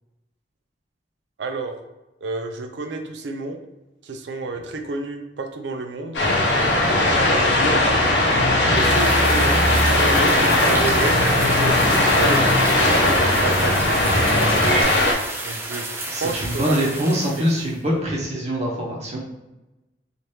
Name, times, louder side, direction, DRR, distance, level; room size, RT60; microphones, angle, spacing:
voice 1, 1.4-1.7 2.2-3.6 4.0-6.2 8.6-13.9 15.4-15.8 16.2-17.1, right 3 dB, 80° right, 5 dB, 0.4 m, -30 dB
sound 1, 6.1-15.1, left 1 dB, 85° left, 0.7 m, -19 dB
sound 2, 6.2-14.8, equal, 40° left, 0.7 m, -24 dB
sound 3, 8.7-17.8, right 2 dB, 15° right, 0.5 m, -31 dB
voice 2, 16.1-19.2, equal, 40° right, -2 dB, 0.8 m, -24 dB
2.8 x 2.5 x 3.2 m, 1.0 s
head